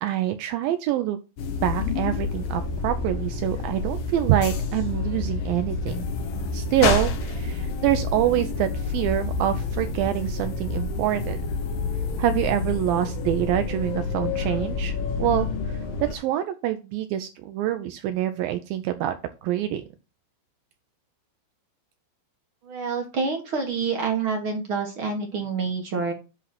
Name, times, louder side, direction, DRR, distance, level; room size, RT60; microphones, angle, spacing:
voice 1, 0.0-1.2 1.6-6.0 6.5-11.4 12.2-19.1 19.4-19.8, right 12 dB, 80° right, 8 dB, 2.3 m, -26 dB
sound 1, 1.4-16.2, left 4 dB, 70° left, 3.0 m, -28 dB
voice 2, 22.6-26.1, right 4 dB, 60° right, 3 dB, 1.4 m, -27 dB
10.0 x 3.9 x 5.8 m, 0.30 s
omnidirectional pair, 4.4 m